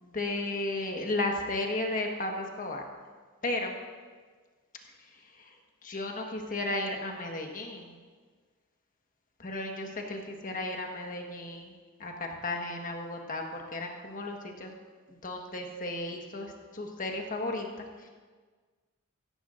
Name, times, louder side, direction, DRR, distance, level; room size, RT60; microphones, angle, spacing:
voice 1, 0.0-2.8 3.4-3.8 5.4-5.5 5.8-7.9 9.4-14.7 15.1-18.1, left 2 dB, 40° left, 2 dB, 1.4 m, -34 dB
15.5 x 14.0 x 2.6 m, 1.5 s
head